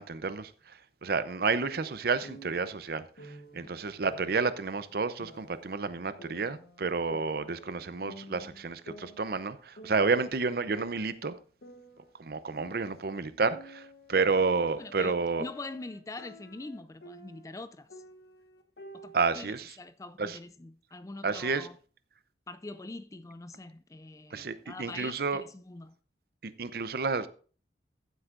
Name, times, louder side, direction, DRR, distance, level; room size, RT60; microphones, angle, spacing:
voice 1, 0.0-11.4 12.2-15.5 19.1-19.7 20.2-20.4 21.2-21.7 24.3-25.4 26.4-27.3, right 4 dB, 55° right, 0.6 m, -30 dB
sound 1, 1.7-2.7 3.2-3.7 4.1-5.7 6.2-7.8 8.0-9.5 9.8-10.3 10.7-13.1 13.5-17.6 17.9-19.2, equal, 70° left, 1.0 m, -50 dB
voice 2, 14.8-18.0 18.9-19.5 19.8-21.8 22.5-26.0, left 2 dB, 20° left, 0.4 m, -44 dB
15.0 x 8.0 x 2.5 m
head